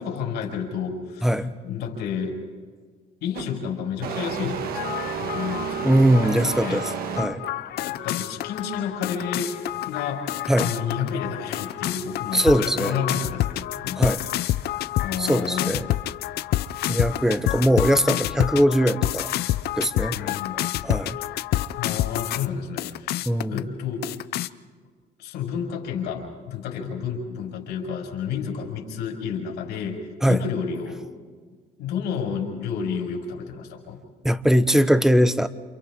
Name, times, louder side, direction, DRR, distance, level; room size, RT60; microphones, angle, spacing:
voice 1, 0.0-2.4 3.2-6.0 6.4-6.9 7.8-9.6 9.9-10.3 10.6-14.4 15.0-15.7 20.1-20.6 21.1-21.3 21.8-24.0 25.2-31.1 31.8-34.0, left 7 dB, 90° left, -1 dB, 5.5 m, -31 dB
voice 2, 1.2-1.5 5.8-6.8 7.2-7.4 10.5-10.7 12.3-12.9 14.0-14.2 15.2-15.9 16.9-19.3 19.7-20.3 20.8-21.2 23.3-23.6 30.2-30.4 34.2-35.5, equal, 5° right, 12 dB, 0.9 m, -20 dB
sound 1, 3.3-3.6 4.0-7.6, right 7 dB, 65° right, 1.4 m, -31 dB
sound 2, 4.7-22.5 22.8-23.6 24.0-24.5, left 14 dB, 70° left, 0.6 m, -28 dB
30.0 x 28.5 x 3.7 m, 1.5 s
cardioid pair, 110°, 17 cm